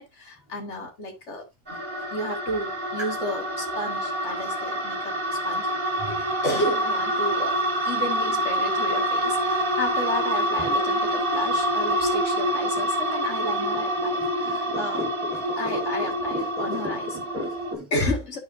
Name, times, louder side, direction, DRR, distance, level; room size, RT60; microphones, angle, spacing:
voice 1, 0.0-1.4 1.7-1.8 2.1-5.7 6.1-7.6 7.8-15.1 15.6-17.2 17.9-18.4, left 1 dB, 65° left, 2.2 m, -32 dB
sound 1, 1.7-17.7, right 1 dB, 45° right, 1.7 m, -26 dB
voice 2, 14.4-15.9 16.3-17.0 17.3-17.9, left 1 dB, 20° right, 2.4 m, -35 dB
11.5 x 4.3 x 2.6 m
omnidirectional pair, 1.3 m